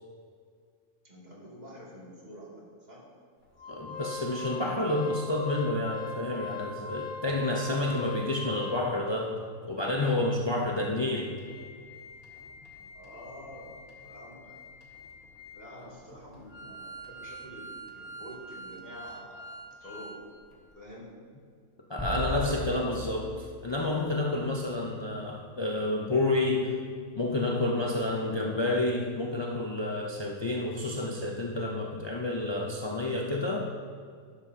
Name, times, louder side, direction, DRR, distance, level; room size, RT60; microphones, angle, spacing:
voice 1, 1.0-3.1 12.8-14.6 15.5-19.5 19.8-20.2 20.7-21.2, equal, 30° right, -5 dB, 2.5 m, -48 dB
Organ, 3.6-9.1 9.6-9.7 10.0-10.1 10.6-20.2 20.5-20.6, left 2 dB, 70° left, 2.1 m, -42 dB
voice 2, 3.7-9.4 9.7-11.4 21.9-26.8 27.2-33.7, left 2 dB, 45° left, -1 dB, 0.3 m, -29 dB
sound 1, 22.0-24.5, left 1 dB, 5° left, 1.0 m, -37 dB
12.0 x 10.5 x 2.8 m, 2.1 s
omnidirectional pair, 1.6 m